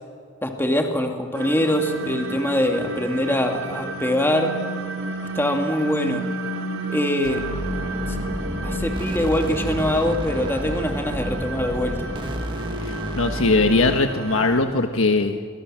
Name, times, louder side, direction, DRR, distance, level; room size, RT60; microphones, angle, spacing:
voice 1, 0.4-4.5 5.3-6.2 6.9-7.4 8.1-8.2 8.6-12.0, left 1 dB, 10° left, 3 dB, 2.2 m, -23 dB
sound 1, 1.3-14.6, right 2 dB, 85° right, 3.7 m, -32 dB
sound 2, 7.2-14.0, equal, 25° right, 2.3 m, -30 dB
voice 2, 12.8-15.4, left 3 dB, 80° left, 5 dB, 1.5 m, -20 dB
30.0 x 24.0 x 7.6 m, 2.1 s
head